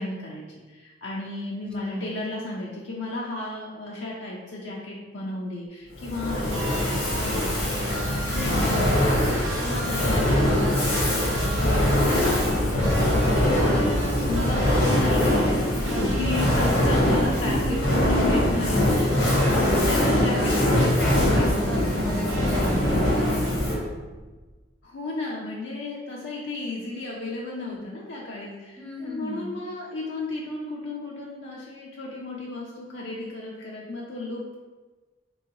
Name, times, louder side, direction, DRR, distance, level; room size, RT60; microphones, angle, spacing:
voice 1, 0.0-11.9 12.2-21.8 24.8-34.6, left 2 dB, 70° left, -4 dB, 0.5 m, -34 dB
voice 2, 1.8-2.2 15.9-16.2 17.0-17.4 19.2-20.6 20.9-23.4 23.7-23.8 28.8-29.6, equal, 5° left, -2 dB, 0.6 m, -35 dB
Fire, 6.0-23.9, left 1 dB, 90° left, 1.4 m, -22 dB
sound 1, 6.5-23.6, right 2 dB, 80° right, 0.6 m, -35 dB
3.8 x 3.8 x 2.8 m, 1.3 s
head